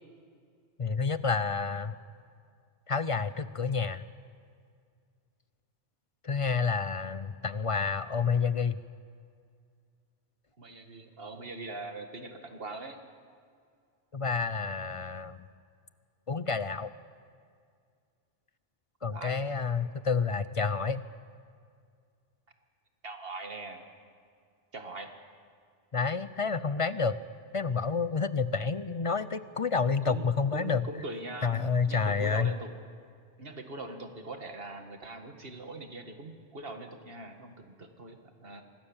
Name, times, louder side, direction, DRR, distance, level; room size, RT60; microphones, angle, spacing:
voice 1, 0.8-2.0 2.9-4.1 6.2-8.8 14.1-15.5 16.3-16.9 19.0-21.0 25.9-27.2 27.5-30.8 31.4-32.5, left 5 dB, 40° left, 14 dB, 0.5 m, -29 dB
voice 2, 10.6-13.0 19.0-19.4 23.0-23.8 24.7-25.1 30.0-32.7 33.4-38.6, right 2 dB, 55° right, 5 dB, 2.1 m, -42 dB
25.5 x 19.5 x 7.2 m, 2.2 s
omnidirectional pair, 1.2 m